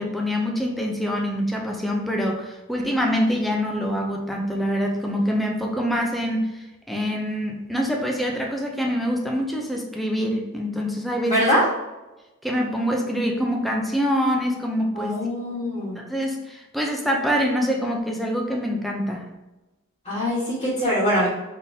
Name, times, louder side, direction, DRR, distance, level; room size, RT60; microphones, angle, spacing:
voice 1, 0.0-11.5 12.4-15.1 16.0-19.3, equal, ahead, -1 dB, 0.5 m, -25 dB
voice 2, 11.2-11.6 14.9-16.0 20.0-21.3, equal, 30° left, -10 dB, 1.3 m, -23 dB
3.8 x 3.7 x 2.7 m, 1.0 s
head